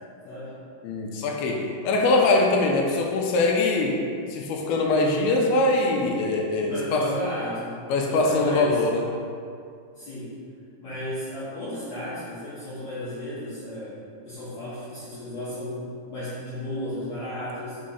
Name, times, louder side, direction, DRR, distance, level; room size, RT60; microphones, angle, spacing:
voice 1, 0.3-0.6 6.7-7.8 8.0-8.8 10.0-10.3 10.8-14.0 14.3-17.8, left 1 dB, 65° left, -12 dB, 1.8 m, -34 dB
voice 2, 0.8-7.1 7.9-9.1, left 2 dB, 80° left, 0 dB, 2.2 m, -23 dB
6.2 x 3.1 x 5.5 m, 2.3 s
omnidirectional pair, 4.8 m